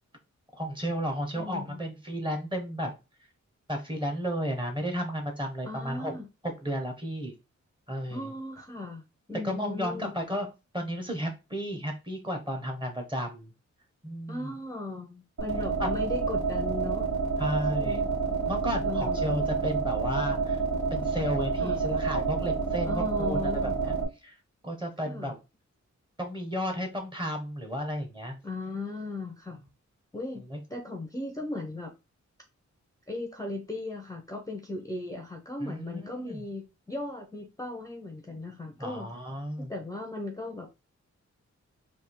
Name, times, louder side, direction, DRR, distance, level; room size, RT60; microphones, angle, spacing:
voice 1, 0.5-2.9 3.7-6.2 6.4-7.3 7.9-8.3 9.4-10.5 10.7-13.5 14.0-14.5 15.8-15.9 17.4-18.0 18.5-20.6 20.9-23.9 24.2-24.3 24.6-25.3 26.2-28.4 30.5-30.6 35.6-36.4 38.8-39.7, equal, 15° right, 1.1 m, -33 dB
voice 2, 1.3-1.8 5.6-6.3 8.1-9.0 9.3-10.1 14.3-17.1 17.7-18.1 18.8-19.3 21.6-21.8 22.8-23.7 25.0-25.3 28.4-29.6 30.1-30.4 30.7-31.9 33.1-39.1 39.7-40.7, left 2 dB, 10° left, 0.7 m, -37 dB
sound 1, 15.4-24.0, right 4 dB, 70° right, 2.0 m, -28 dB
3.6 x 2.8 x 4.4 m
wide cardioid pair, 155°, 30 cm